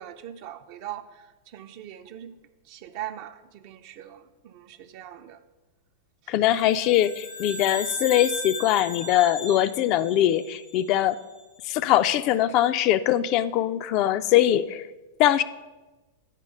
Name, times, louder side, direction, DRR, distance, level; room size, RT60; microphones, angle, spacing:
voice 1, 0.0-2.4 2.7-5.4 6.2-6.3, right 11 dB, 50° right, 0.5 m, -41 dB
voice 2, 6.3-11.2 11.7-14.8 15.2-15.4, left 12 dB, 45° left, 0.3 m, -22 dB
sound 1, 6.6-11.1, left 1 dB, 90° left, 1.5 m, -37 dB
9.0 x 4.8 x 5.3 m
figure-of-eight pair, 95°, 0 cm